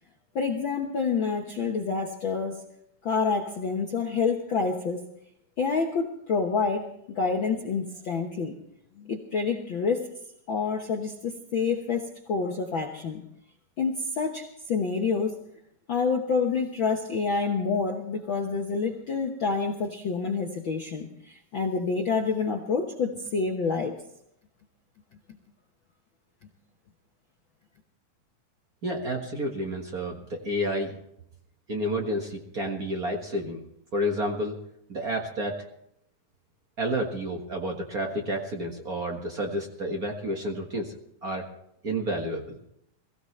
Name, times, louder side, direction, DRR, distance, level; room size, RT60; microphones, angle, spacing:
voice 1, 0.3-2.6 3.0-5.0 5.6-8.5 9.0-10.1 10.5-13.2 13.8-15.4 15.9-23.9, left 5 dB, 60° left, 3 dB, 1.2 m, -28 dB
voice 2, 28.8-30.9 31.7-33.6 33.9-34.6 34.9-35.6 36.8-40.9 41.2-41.4 41.8-42.6, equal, 40° right, 1 dB, 1.3 m, -30 dB
22.0 x 15.5 x 3.3 m, 0.75 s
omnidirectional pair, 3.9 m